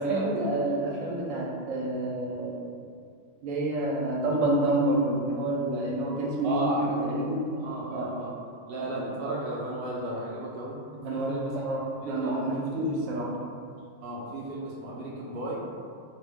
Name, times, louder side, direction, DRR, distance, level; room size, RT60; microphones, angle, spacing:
voice 1, 0.0-2.6 3.4-7.7 7.9-8.1 8.9-9.1 11.0-13.3, right 1 dB, 80° right, -2 dB, 1.0 m, -28 dB
voice 2, 6.4-7.0 7.6-8.3 8.7-10.8 11.1-11.5 12.0-12.3 14.0-15.6, right 2 dB, 60° right, -4 dB, 0.6 m, -34 dB
2.5 x 2.0 x 3.4 m, 2.2 s
omnidirectional pair, 1.3 m